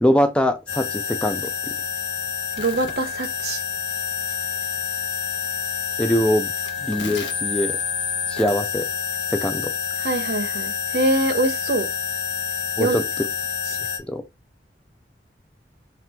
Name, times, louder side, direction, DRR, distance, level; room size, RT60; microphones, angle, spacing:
voice 1, 0.0-1.8 6.0-6.5 6.8-7.8 8.3-8.9 9.3-9.7 12.8-13.0 14.1-14.2, equal, 5° left, 0.3 m, -22 dB
sound 1, 0.7-14.0, left 7 dB, 85° left, 0.9 m, -28 dB
voice 2, 2.6-3.6 10.0-11.9 12.8-13.0 13.7-13.8, right 2 dB, 60° right, 0.7 m, -24 dB
4.4 x 2.5 x 3.3 m
head